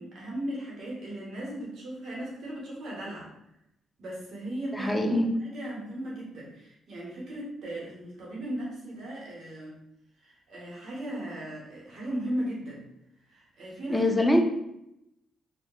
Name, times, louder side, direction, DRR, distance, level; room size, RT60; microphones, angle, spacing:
voice 1, 0.0-3.3 4.0-5.1 5.4-9.8 10.2-12.8 13.3-14.1, right 1 dB, 65° right, -4 dB, 0.9 m, -37 dB
voice 2, 4.7-5.4 13.9-14.4, left 1 dB, 10° left, 3 dB, 0.4 m, -23 dB
2.8 x 2.1 x 2.2 m, 0.83 s
cardioid pair, 90°, 0 cm